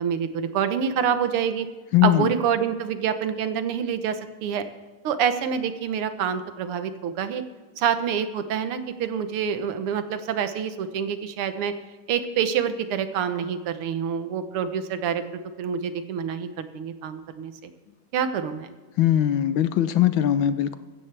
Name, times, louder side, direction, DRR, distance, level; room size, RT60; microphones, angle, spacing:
voice 1, 0.0-1.7 2.0-4.6 5.0-7.4 7.8-11.7 12.1-15.2 15.6-17.5 18.1-18.7, right 8 dB, 90° right, 10 dB, 1.9 m, -26 dB
voice 2, 1.9-2.3 19.0-20.7, left 12 dB, 70° left, 12 dB, 1.4 m, -20 dB
16.0 x 14.5 x 3.3 m, 1.3 s
omnidirectional pair, 2.4 m